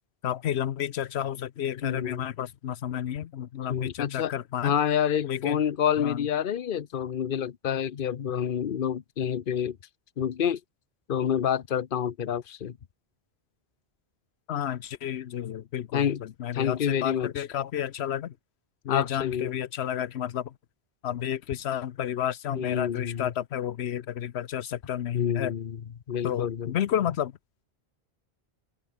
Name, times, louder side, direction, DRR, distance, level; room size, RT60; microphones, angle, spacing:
voice 1, 0.2-4.8 5.2-5.6 6.0-6.2 14.5-18.3 18.8-20.5 21.0-25.5 26.2-27.3, left 10 dB, 85° left, 1.0 m, -31 dB
voice 2, 1.8-2.3 3.7-4.3 4.6-9.8 10.2-10.6 11.1-12.8 15.9-16.2 16.5-17.3 18.9-19.5 22.5-23.3 25.1-25.8 26.1-26.7, left 9 dB, 55° left, 1.0 m, -28 dB
open air
omnidirectional pair, 1.1 m